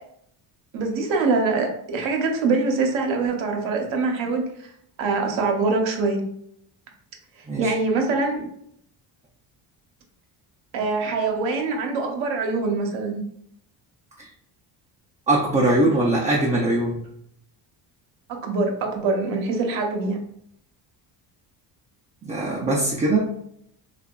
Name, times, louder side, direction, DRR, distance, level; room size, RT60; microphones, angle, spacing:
voice 1, 0.7-4.5 5.0-6.2 7.6-8.4 10.7-13.2 18.3-20.2, right 3 dB, 70° right, 2 dB, 0.8 m, -24 dB
voice 2, 15.3-17.0 22.2-23.3, right 2 dB, 15° right, -2 dB, 0.3 m, -21 dB
2.7 x 2.4 x 2.2 m, 0.71 s
supercardioid pair, 70°, 48 cm